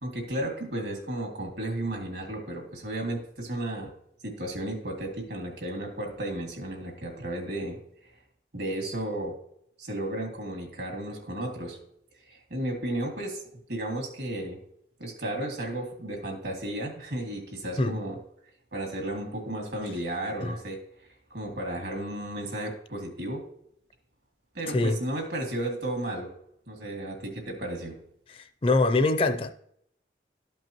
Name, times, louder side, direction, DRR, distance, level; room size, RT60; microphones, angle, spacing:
voice 1, 0.0-3.9 4.2-7.8 8.5-9.3 9.8-11.8 12.3-13.4 13.7-14.6 15.0-18.2 18.7-20.8 21.3-23.4 24.5-26.3 26.7-28.0, right 1 dB, 70° right, 2 dB, 2.1 m, -33 dB
voice 2, 28.3-29.5, left 2 dB, 30° left, 7 dB, 0.4 m, -24 dB
12.5 x 5.3 x 2.9 m, 0.71 s
head